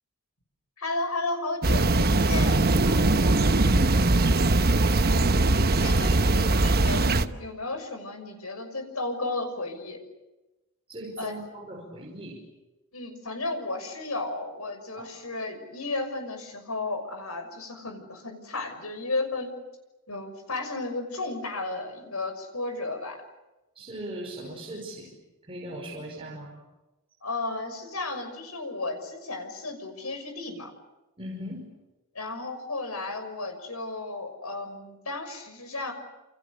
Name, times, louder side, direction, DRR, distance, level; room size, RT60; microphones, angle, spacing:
voice 1, 0.8-2.8 4.9-5.4 5.8-10.0 11.2-11.4 12.9-19.5 20.1-23.2 24.5-24.6 27.2-30.7 32.1-35.9, left 2 dB, 90° left, 6 dB, 6.3 m, -34 dB
sound 1, 1.6-7.3, right 2 dB, 45° right, 1.1 m, -21 dB
voice 2, 2.8-4.5 10.9-12.4 15.0-15.1 23.8-25.1 25.4-26.6 31.2-31.7, equal, 25° right, -2 dB, 5.4 m, -39 dB
29.0 x 28.5 x 6.9 m, 1.0 s
head